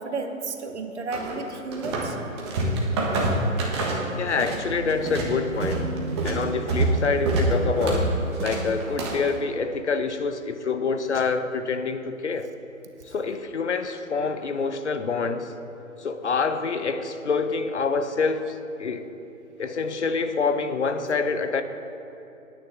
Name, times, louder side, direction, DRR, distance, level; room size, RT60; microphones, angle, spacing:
voice 1, 0.0-2.2, right 3 dB, 55° right, 6 dB, 1.3 m, -32 dB
sound 1, 1.1-2.1 2.4-4.6 4.9-9.3, right 2 dB, 20° right, 1.4 m, -26 dB
sound 2, 4.1-9.2, right 5 dB, 80° right, 1.0 m, -38 dB
voice 2, 4.2-5.9 6.2-12.5 13.1-15.5 16.0-19.0 19.6-21.6, left 4 dB, 55° left, 9 dB, 0.9 m, -26 dB
18.0 x 9.5 x 3.7 m, 2.9 s
figure-of-eight pair, 145°, 41 cm